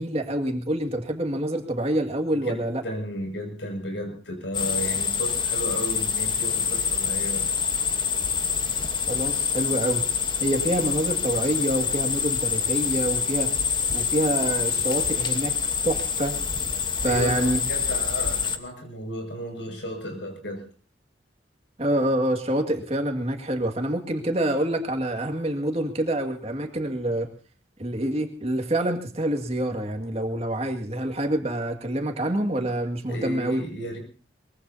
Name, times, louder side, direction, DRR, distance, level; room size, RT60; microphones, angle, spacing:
voice 1, 0.0-2.8 9.1-10.1 10.4-13.5 13.9-15.5 15.8-16.4 17.0-17.6 21.8-27.3 27.8-33.6, right 1 dB, 35° right, 5 dB, 2.1 m, -26 dB
voice 2, 2.4-7.5 17.0-20.7 33.1-34.0, equal, 85° left, 3 dB, 6.4 m, -34 dB
sound 1, 4.5-18.6, left 6 dB, 25° left, 1.1 m, -26 dB
23.0 x 22.5 x 2.8 m, 0.39 s
head